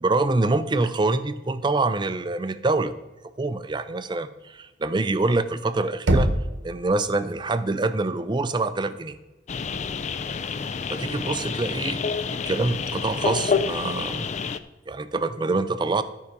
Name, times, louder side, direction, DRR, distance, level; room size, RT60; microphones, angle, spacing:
voice 1, 0.0-2.9 3.4-6.3 6.6-9.2 10.9-12.0 12.5-14.3 14.9-16.0, right 3 dB, 25° right, 12 dB, 0.5 m, -25 dB
Knock, 6.1-7.0, right 1 dB, 85° right, 1.0 m, -23 dB
sound 1, 9.5-14.6, left 5 dB, 40° left, 0.4 m, -28 dB
12.5 x 4.8 x 5.3 m, 1.1 s
head